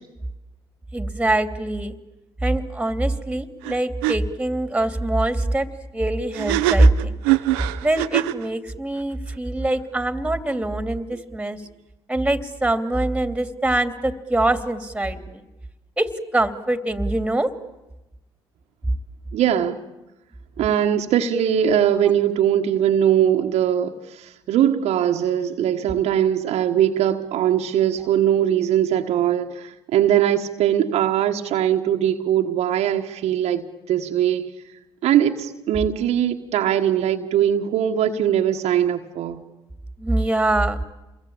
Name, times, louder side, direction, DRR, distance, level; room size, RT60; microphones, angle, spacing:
voice 1, 0.9-2.0 2.4-5.7 5.9-7.2 7.8-11.6 12.1-15.4 16.0-17.5 40.0-40.8, right 2 dB, 10° right, 9 dB, 2.9 m, -23 dB
sound 1, 3.6-3.7 4.0-4.2 6.3-8.5, right 15 dB, 85° right, 0.9 m, -22 dB
voice 2, 19.3-19.8 20.6-34.5 35.0-39.4, right 10 dB, 65° right, 4 dB, 1.6 m, -21 dB
28.0 x 22.0 x 8.8 m, 1.0 s
hypercardioid pair, 60°, 12 cm